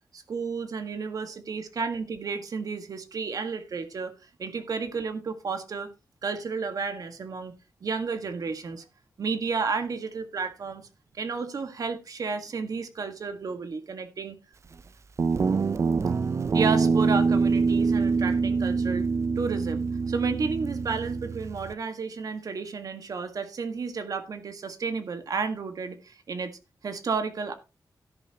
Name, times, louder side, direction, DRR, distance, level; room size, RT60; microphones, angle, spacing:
voice 1, 0.1-4.1 4.4-5.9 6.2-7.5 7.8-8.8 9.2-10.8 11.1-14.4 16.5-19.1 19.3-27.5, right 5 dB, 60° right, 1.7 m, -32 dB
Guitar, 15.2-21.7, right 4 dB, 45° right, 0.5 m, -25 dB
13.5 x 10.5 x 3.0 m
wide cardioid pair, 135°, 7 cm